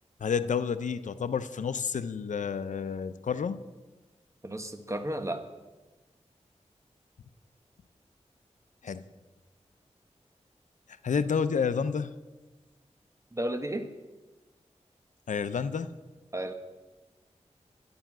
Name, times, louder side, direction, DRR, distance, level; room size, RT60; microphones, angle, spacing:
voice 1, 0.2-3.6 8.8-9.0 11.0-12.1 15.3-15.9, left 6 dB, 85° left, 13 dB, 0.6 m, -30 dB
voice 2, 4.4-5.4 13.3-13.9 16.3-16.5, right 1 dB, 25° right, 8 dB, 1.3 m, -33 dB
11.5 x 10.5 x 6.0 m, 1.2 s
cardioid pair, 50°, 12 cm